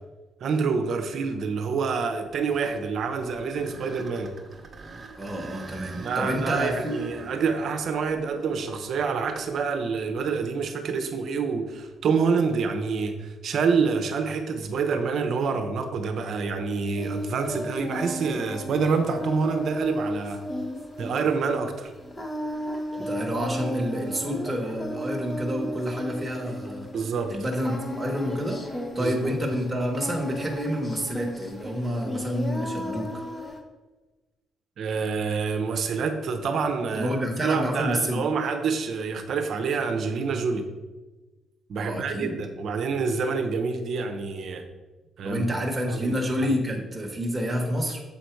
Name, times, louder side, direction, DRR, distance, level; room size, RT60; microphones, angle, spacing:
voice 1, 0.4-4.3 5.9-20.4 21.0-21.9 26.9-27.3 29.0-29.2 34.8-37.1 37.4-40.7 41.7-44.6 45.2-45.4 45.9-46.2 46.4-46.5, right 5 dB, 65° right, 7 dB, 0.8 m, -27 dB
sound 1, 2.3-10.3 10.9-11.0 11.7-11.9 15.4-15.8, right 3 dB, 35° right, 1.0 m, -45 dB
voice 2, 5.2-6.9 23.0-26.9 27.3-33.2 36.9-38.2 41.8-42.3 45.2-48.0, equal, 10° right, 0 dB, 1.3 m, -29 dB
Singing, 17.0-33.6, equal, 20° left, 0.9 m, -34 dB
7.1 x 4.1 x 4.6 m, 1.2 s
cardioid pair, 90°, 0 cm